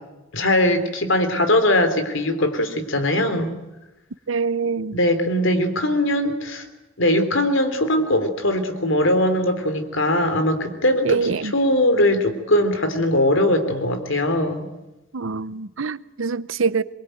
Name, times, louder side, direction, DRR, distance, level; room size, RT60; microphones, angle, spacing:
voice 1, 0.3-3.5 4.9-6.7 7.0-14.7, left 1 dB, 70° left, 3.3 m, -20 dB
voice 2, 4.3-5.0 11.0-11.5 15.1-16.8, right 5 dB, 80° right, 0.8 m, -24 dB
23.0 x 23.0 x 9.1 m
head